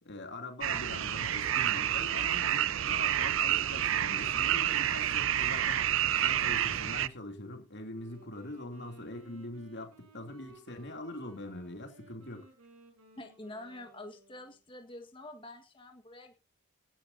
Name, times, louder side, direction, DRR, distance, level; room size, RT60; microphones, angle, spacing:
voice 1, 0.0-5.8 6.2-12.5, left 2 dB, 50° left, 3.0 m, -43 dB
sound 1, 0.6-7.1, right 11 dB, 60° right, 0.6 m, -29 dB
Wind instrument woodwind instrument, 7.9-14.6, right 3 dB, 80° right, 5.5 m, -58 dB
voice 2, 13.2-16.3, left 1 dB, 25° left, 1.7 m, -47 dB
17.0 x 12.0 x 2.8 m
head